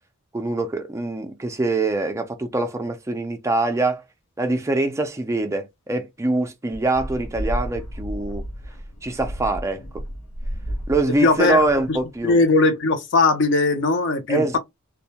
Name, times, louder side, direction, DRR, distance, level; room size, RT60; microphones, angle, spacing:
voice 1, 0.3-4.0 4.4-8.5 9.0-10.0 10.9-12.4 14.3-14.6, right 2 dB, 15° right, 0.3 m, -24 dB
sound 1, 6.7-12.2, equal, 85° left, 0.7 m, -32 dB
voice 2, 11.2-11.6 11.9-12.0 12.2-14.6, left 3 dB, 55° left, 0.5 m, -19 dB
2.2 x 2.1 x 2.7 m
head